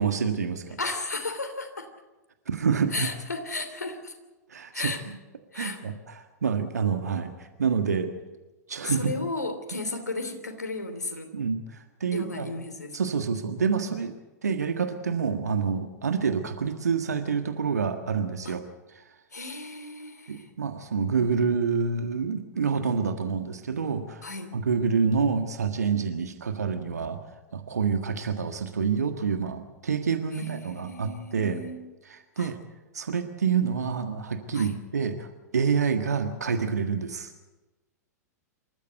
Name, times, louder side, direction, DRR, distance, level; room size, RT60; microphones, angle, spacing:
voice 1, 0.0-0.8 2.5-3.1 4.5-5.2 5.5-8.1 8.7-9.1 11.3-12.5 12.9-14.1 14.4-18.6 18.9-19.0 20.3-24.3 24.5-27.2 27.5-31.6 32.1-32.6 32.9-37.3, right 6 dB, 70° right, 7 dB, 1.6 m, -27 dB
voice 2, 0.8-1.9 2.9-4.1 4.7-5.0 5.5-5.8 8.8-11.3 12.1-13.0 18.4-18.6 19.3-20.5 24.2-24.5 30.3-31.8 32.4-32.5 34.5-34.8, left 2 dB, 75° left, 8 dB, 3.0 m, -34 dB
27.0 x 14.0 x 8.1 m, 1.1 s
figure-of-eight pair, 95°, 9 cm